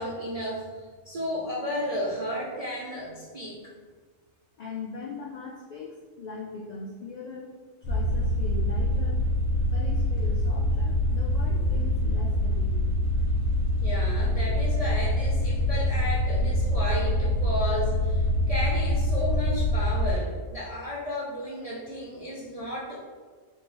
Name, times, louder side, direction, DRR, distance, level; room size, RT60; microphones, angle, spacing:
voice 1, 0.0-3.6 13.8-23.1, left 1 dB, 60° right, -6 dB, 0.4 m, -33 dB
voice 2, 4.6-7.6 7.9-9.2 9.7-12.8, left 4 dB, 85° left, -3 dB, 0.3 m, -40 dB
sound 1, 7.8-20.1, left 1 dB, 65° left, 1.0 m, -25 dB
3.6 x 3.2 x 2.9 m, 1.5 s
omnidirectional pair, 1.3 m